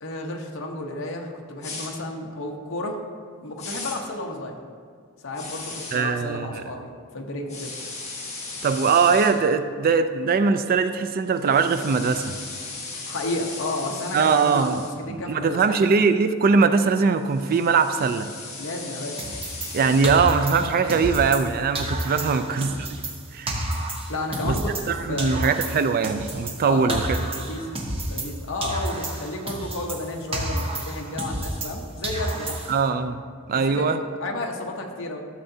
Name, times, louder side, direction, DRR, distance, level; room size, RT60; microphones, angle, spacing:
voice 1, 0.0-3.0 3.4-4.6 5.2-7.7 13.1-14.7 15.0-15.9 18.6-19.2 22.2-22.4 24.1-25.4 26.6-27.0 27.3-27.7 28.1-32.6 33.5-35.2, left 2 dB, 60° left, 1 dB, 0.9 m, -32 dB
sound 1, 1.6-1.9 3.6-4.0 5.3-6.0 7.5-9.3 11.3-14.9 17.0-20.0, left 3 dB, 30° left, 1.5 m, -37 dB
voice 2, 5.9-6.6 8.6-12.3 14.1-14.8 15.1-18.3 19.7-22.9 23.3-23.6 24.4-24.6 24.9-27.2 32.7-33.2 33.5-34.0, right 5 dB, 40° right, 10 dB, 0.3 m, -21 dB
sound 2, 19.2-21.5 21.8-24.9 25.2-28.4 28.6-31.8 32.0-32.9, right 1 dB, 25° right, 0.9 m, -30 dB
12.5 x 6.8 x 2.7 m, 2.1 s
head